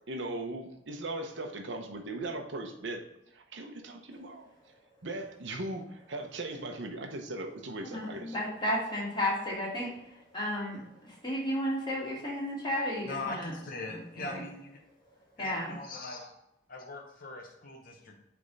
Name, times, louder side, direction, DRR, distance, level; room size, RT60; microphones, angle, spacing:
voice 1, 0.1-3.0 3.3-4.5 5.0-8.3, right 2 dB, 75° right, 4 dB, 0.8 m, -38 dB
voice 2, 7.8-13.5 13.9-14.4 15.1-15.7, left 1 dB, 25° left, -5 dB, 2.3 m, -33 dB
voice 3, 13.0-14.8 15.4-16.3 16.7-18.2, left 3 dB, 50° left, 0 dB, 0.9 m, -41 dB
8.4 x 3.5 x 4.0 m, 0.85 s
head